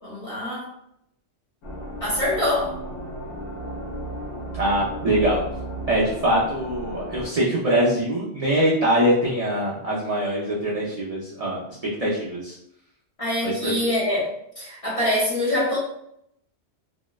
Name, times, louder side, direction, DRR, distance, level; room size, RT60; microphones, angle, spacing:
voice 1, 0.0-0.7 2.0-2.8 13.2-14.3 14.6-15.8, left 1 dB, 35° left, -7 dB, 0.7 m, -24 dB
sound 1, 1.6-7.3, right 1 dB, 75° left, 1.0 m, -34 dB
voice 2, 4.5-5.4 5.9-11.6 12.0-12.5 13.4-13.7, right 1 dB, 60° right, -6 dB, 0.4 m, -23 dB
2.7 x 2.0 x 2.2 m, 0.76 s
omnidirectional pair, 1.2 m